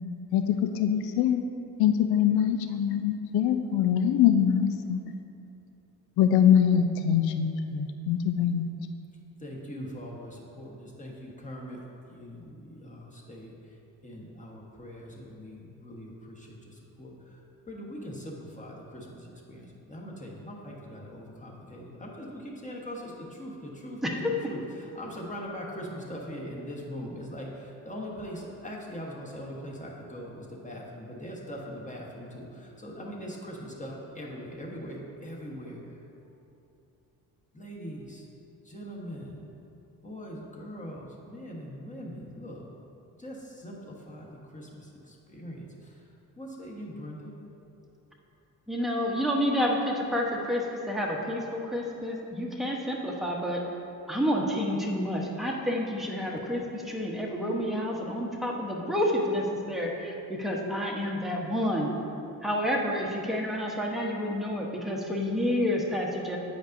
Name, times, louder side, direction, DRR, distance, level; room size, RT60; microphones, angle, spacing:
voice 1, 0.3-1.4 1.8-5.0 6.2-8.7, left 9 dB, 65° left, 7 dB, 0.5 m, -23 dB
voice 2, 9.4-13.5 14.0-17.4 17.7-24.2 24.5-35.8 37.5-38.3 38.6-39.5 40.0-42.6 43.2-44.3 44.5-45.9 46.4-47.3, equal, 20° left, -2 dB, 1.2 m, -41 dB
voice 3, 24.0-24.3 48.7-53.6 54.1-61.9 62.4-66.4, equal, ahead, -2 dB, 0.9 m, -29 dB
8.3 x 5.2 x 2.6 m, 2.8 s
supercardioid pair, 65°, 41 cm